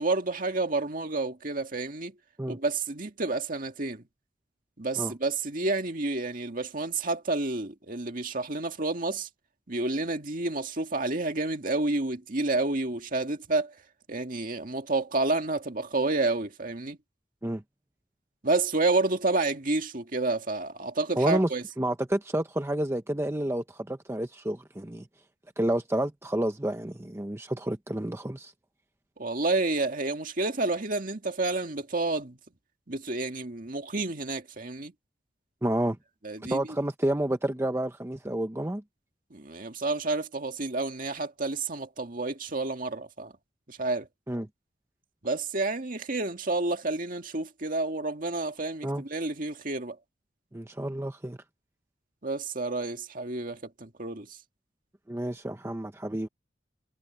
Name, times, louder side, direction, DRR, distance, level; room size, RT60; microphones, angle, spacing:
voice 1, 0.0-2.1 2.5-4.0 4.8-9.3 9.7-13.7 14.1-17.0 18.4-21.6 29.2-32.4 32.9-34.9 36.2-36.6 39.3-43.3 43.7-44.1 45.2-50.0 52.2-54.3, right 2 dB, 45° right, 2.0 m, -29 dB
voice 2, 21.2-21.5 21.8-25.1 25.6-28.5 35.6-36.0 36.5-38.8 44.3-44.5 48.8-49.0 50.5-51.4 55.1-56.3, right 1 dB, 15° right, 0.7 m, -29 dB
head